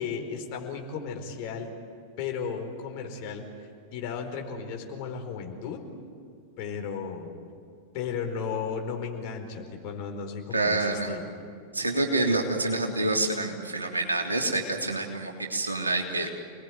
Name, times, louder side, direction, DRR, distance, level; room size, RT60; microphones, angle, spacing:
voice 1, 0.0-1.7 2.2-3.5 3.9-5.8 6.6-7.3 7.9-11.3, left 6 dB, 45° left, 4 dB, 4.5 m, -34 dB
voice 2, 10.5-11.2 11.7-16.3, right 2 dB, 80° right, 2 dB, 3.3 m, -27 dB
29.5 x 20.0 x 9.6 m, 2.2 s
figure-of-eight pair, 90°, 0 cm